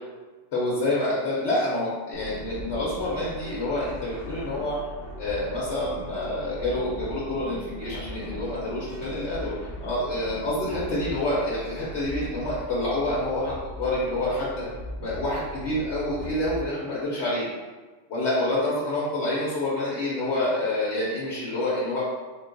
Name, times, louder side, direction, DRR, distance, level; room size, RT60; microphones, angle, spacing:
voice 1, 0.5-4.8 5.2-9.6 9.8-14.7 15.0-17.5 18.1-22.0, left 1 dB, 70° left, -7 dB, 1.1 m, -27 dB
sound 1, 2.1-16.6, equal, 15° left, 0.9 m, -39 dB
3.8 x 2.3 x 3.9 m, 1.3 s
omnidirectional pair, 1.3 m